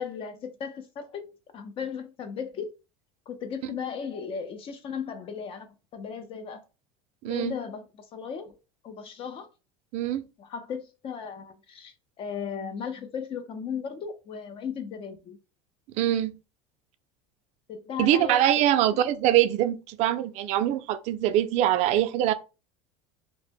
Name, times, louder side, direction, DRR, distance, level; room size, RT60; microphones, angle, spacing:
voice 1, 0.0-2.7 3.3-5.7 5.9-6.6 7.2-8.6 8.8-9.5 10.4-15.4 17.7-18.4, left 6 dB, 40° left, 0.4 m, -36 dB
voice 2, 7.2-7.5 9.9-10.2 16.0-16.3 18.0-22.3, right 12 dB, 55° right, 0.4 m, -23 dB
2.0 x 2.0 x 3.3 m
supercardioid pair, 110°, 14 cm